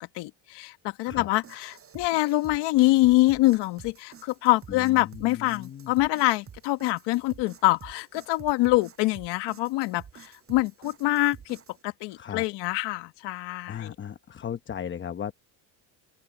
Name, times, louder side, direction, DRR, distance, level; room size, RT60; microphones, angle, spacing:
voice 1, 0.1-11.6 11.8-13.9, left 19 dB, 70° left, 1.6 m, -25 dB
sound 1, 1.1-11.8, right 7 dB, 30° right, 7.6 m, -50 dB
voice 2, 4.7-5.9 12.1-12.4 13.7-15.3, left 8 dB, 25° left, 1.0 m, -37 dB
open air
cardioid pair, 130°, 43 cm